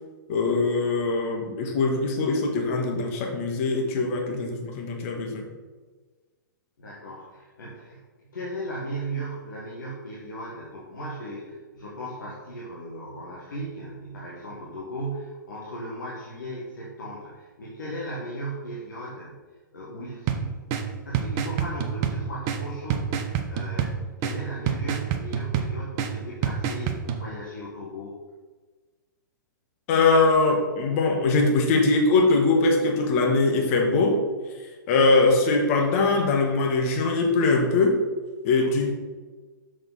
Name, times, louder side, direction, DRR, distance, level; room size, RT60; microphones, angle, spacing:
voice 1, 0.3-5.5 29.9-34.2 34.9-38.0 38.4-39.0, left 3 dB, 40° left, 2 dB, 1.5 m, -22 dB
voice 2, 6.8-8.0 8.3-19.4 19.7-20.7 21.1-28.2 38.6-38.9, right 1 dB, 65° left, -6 dB, 1.7 m, -36 dB
sound 1, 20.3-27.2, right 7 dB, 30° right, 0.7 m, -29 dB
6.7 x 6.4 x 4.1 m, 1.3 s
figure-of-eight pair, 110°, 11 cm